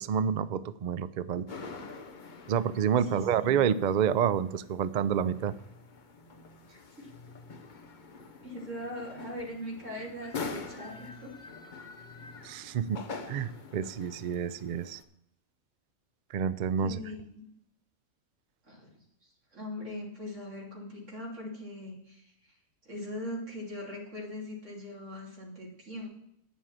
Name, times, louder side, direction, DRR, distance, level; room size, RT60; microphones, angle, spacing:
voice 1, 0.0-1.4 2.5-5.5 12.4-13.0 13.3-15.0 16.3-17.0, right 8 dB, 80° right, 15 dB, 0.4 m, -28 dB
sound 1, 1.5-15.0, left 4 dB, 40° left, 0.9 m, -45 dB
voice 2, 3.0-3.4 6.7-7.1 8.4-11.3 16.8-17.4 18.6-22.6 22.8-26.1, left 1 dB, 60° right, -3 dB, 3.5 m, -41 dB
9.5 x 7.2 x 7.4 m, 0.76 s
omnidirectional pair, 1.4 m